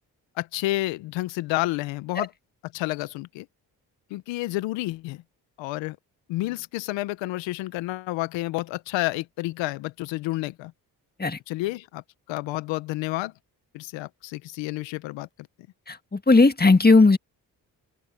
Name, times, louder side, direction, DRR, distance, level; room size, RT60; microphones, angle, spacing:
voice 1, 0.4-2.3 2.7-3.5 4.1-5.2 5.6-6.0 6.3-10.7 11.5-12.0 12.3-13.3 13.7-15.3, left 18 dB, 90° left, 1.0 m, -30 dB
voice 2, 15.9-17.2, left 3 dB, 20° left, 2.0 m, -17 dB
open air
supercardioid pair, 45°, 44 cm